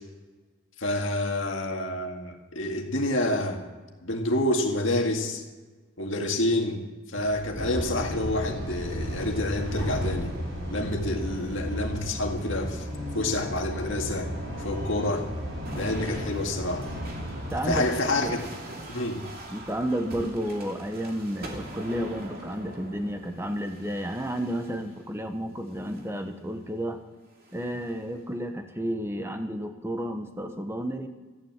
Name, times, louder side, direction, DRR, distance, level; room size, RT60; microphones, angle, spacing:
voice 1, 0.8-3.6 4.0-5.4 6.0-6.8 7.1-10.4 10.7-12.8 13.1-14.3 14.6-15.3 15.8-16.9 17.7-18.4 18.9-19.3, left 1 dB, 65° left, 2 dB, 2.0 m, -28 dB
sound 1, 7.2-12.5, equal, 50° left, 3.7 m, -41 dB
sound 2, 7.5-17.8, equal, 70° right, 4.3 m, -34 dB
sound 3, 15.6-25.0 25.7-26.2 27.3-28.0, right 1 dB, 45° right, 2.6 m, -43 dB
voice 2, 17.5-17.9 18.2-18.3 19.5-27.0 27.5-31.1, equal, 10° right, 6 dB, 1.0 m, -31 dB
14.5 x 10.5 x 7.4 m, 1.3 s
head